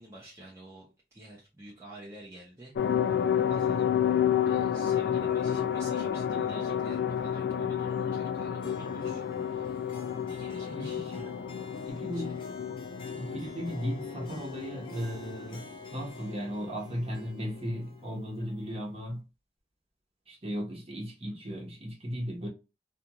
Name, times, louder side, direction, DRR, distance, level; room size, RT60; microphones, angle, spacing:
voice 1, 0.0-2.7 3.5-3.9 4.4-11.1 11.8-12.4, right 1 dB, 15° right, 0.6 m, -50 dB
sound 1, 2.8-16.9 17.2-17.3 17.6-17.7, left 9 dB, 80° left, 0.3 m, -30 dB
Harp, 8.6-19.2, left 1 dB, 30° left, 0.6 m, -49 dB
voice 2, 10.7-11.3 11.9-12.4 13.1-15.7 15.9-19.2 20.3-22.5, equal, 35° right, 1.0 m, -36 dB
2.5 x 2.4 x 2.8 m
head